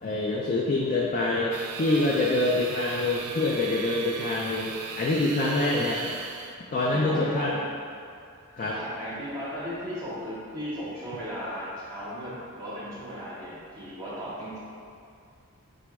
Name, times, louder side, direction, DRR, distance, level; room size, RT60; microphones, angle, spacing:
voice 1, 0.0-6.1 6.7-7.5 8.5-8.8, left 2 dB, 35° left, -3 dB, 0.3 m, -26 dB
sound 1, 1.5-6.6, right 5 dB, 85° right, 0.4 m, -38 dB
voice 2, 6.9-7.6 8.6-14.6, equal, 15° right, -10 dB, 0.7 m, -36 dB
5.0 x 2.1 x 4.6 m, 2.4 s
head